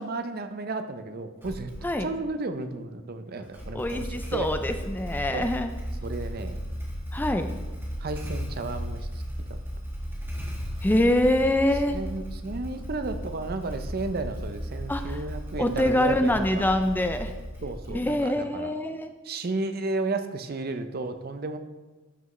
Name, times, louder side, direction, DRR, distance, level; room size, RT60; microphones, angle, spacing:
voice 1, 0.0-1.7 2.0-4.5 5.3-5.5 6.0-6.6 8.0-9.1 11.9-16.7 17.6-18.7 19.2-21.6, right 3 dB, 45° right, 9 dB, 0.6 m, -33 dB
Motorcycle / Engine starting, 1.4-2.1 3.4-18.3, equal, 10° right, 1.5 m, -35 dB
voice 2, 3.7-5.7 7.1-7.5 10.8-11.9 14.9-15.2 15.6-17.3 17.9-19.1, left 1 dB, 10° left, 8 dB, 0.4 m, -25 dB
12.5 x 6.0 x 3.1 m, 1.2 s
head